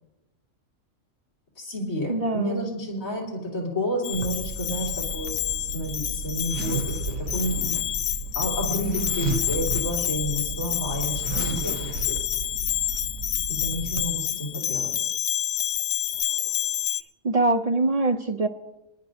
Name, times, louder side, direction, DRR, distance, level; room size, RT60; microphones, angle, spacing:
voice 1, 1.6-7.8 8.4-12.2 13.5-15.1, equal, 85° left, -4 dB, 3.5 m, -30 dB
voice 2, 2.1-2.7 17.2-18.5, right 2 dB, 65° right, 7 dB, 0.3 m, -23 dB
Bell, 4.0-17.0, left 12 dB, 70° left, 1.0 m, -29 dB
Zipper (clothing), 4.1-14.1, right 4 dB, 80° right, 1.2 m, -33 dB
26.5 x 11.5 x 2.6 m, 1.0 s
omnidirectional pair, 1.4 m